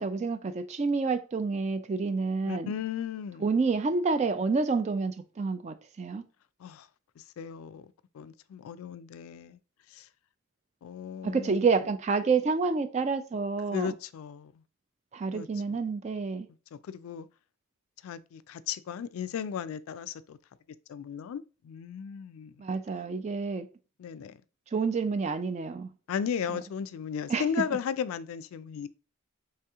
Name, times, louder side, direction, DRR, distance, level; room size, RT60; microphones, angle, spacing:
voice 1, 0.0-2.7 3.4-6.2 11.2-13.9 15.1-16.5 22.6-23.7 24.7-25.9 27.3-27.4, right 4 dB, 30° right, 0.3 m, -28 dB
voice 2, 2.5-3.5 6.6-6.9 7.2-7.8 8.1-9.6 9.9-10.1 10.8-11.7 13.7-14.5 15.3-15.8 16.7-17.3 18.0-20.4 20.9-22.5 24.0-24.4 26.1-28.9, left 7 dB, 80° left, 0.3 m, -35 dB
3.3 x 2.8 x 3.5 m
head